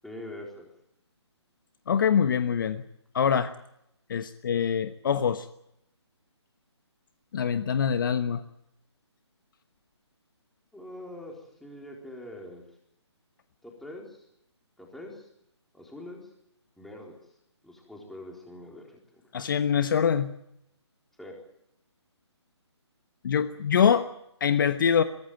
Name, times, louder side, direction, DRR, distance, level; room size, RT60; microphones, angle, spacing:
voice 1, 0.0-0.7 10.7-12.6 13.6-14.3 14.8-15.3 15.7-16.3 16.8-17.2 17.6-19.2 21.2-21.4, left 1 dB, ahead, -1 dB, 4.1 m, -43 dB
voice 2, 1.9-2.8 3.1-3.5 4.1-5.5 7.3-8.4 19.3-20.3 23.2-24.1 24.4-25.0, left 7 dB, 45° left, 10 dB, 1.2 m, -24 dB
23.5 x 16.5 x 9.1 m, 0.79 s
figure-of-eight pair, 150°, 15 cm